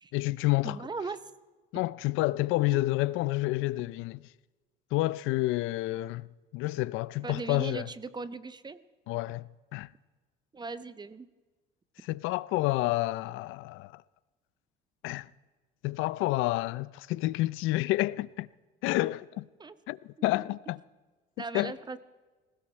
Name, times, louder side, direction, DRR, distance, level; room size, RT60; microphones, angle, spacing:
voice 1, 0.1-0.8 1.7-4.2 4.9-6.3 6.5-7.9 9.1-9.9 12.0-14.0 15.0-15.3 15.8-18.5 18.8-19.4 19.9-20.8 21.5-21.7, left 18 dB, 75° left, 0.5 m, -29 dB
voice 2, 0.6-1.3 2.7-2.8 7.2-8.8 10.5-11.3 19.6-19.7 20.2-20.5 21.4-22.0, right 4 dB, 20° right, 0.7 m, -38 dB
20.0 x 16.5 x 4.4 m
cardioid pair, 105°, 21 cm